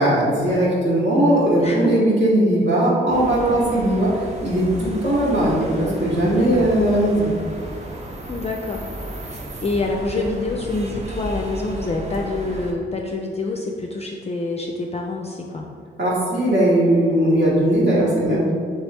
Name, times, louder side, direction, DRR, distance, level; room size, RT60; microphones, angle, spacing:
voice 1, 0.0-4.1 4.4-7.4 16.0-18.5, right 1 dB, 60° right, -7 dB, 1.0 m, -18 dB
voice 2, 1.6-2.0 6.2-6.7 8.3-8.9 9.2-15.7, left 2 dB, 30° left, 0 dB, 0.4 m, -27 dB
sound 1, 3.1-12.7, right 1 dB, 35° right, 0.6 m, -34 dB
3.3 x 3.0 x 3.3 m, 2.2 s
cardioid pair, 55°, 20 cm